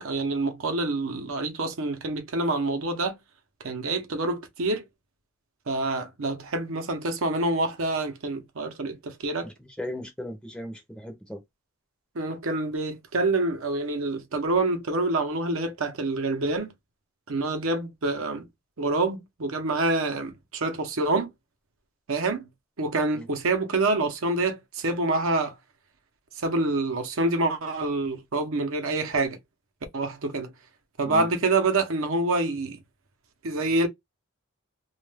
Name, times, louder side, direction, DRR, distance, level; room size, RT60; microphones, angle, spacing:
voice 1, 0.0-3.2 3.6-4.8 5.7-9.5 12.1-16.7 17.3-18.4 18.8-21.3 22.1-22.5 22.8-25.6 26.4-29.4 29.9-30.5 31.0-32.8 33.4-33.9, right 2 dB, 65° right, 0.7 m, -27 dB
voice 2, 9.8-11.4 23.1-23.3 31.0-31.3, equal, 5° left, 0.6 m, -36 dB
2.4 x 2.2 x 3.2 m
head